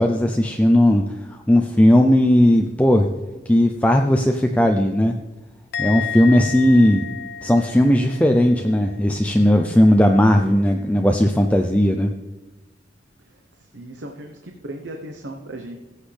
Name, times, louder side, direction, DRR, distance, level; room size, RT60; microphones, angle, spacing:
voice 1, 0.0-3.1 3.5-5.2 5.8-7.0 7.4-12.1, left 1 dB, 10° left, 4 dB, 0.5 m, -17 dB
Musical instrument, 5.7-9.1 9.4-9.8, left 8 dB, 60° left, 0.5 m, -32 dB
voice 2, 13.3-15.8, right 1 dB, 80° right, 3 dB, 1.0 m, -37 dB
16.5 x 8.2 x 3.4 m, 1.2 s
head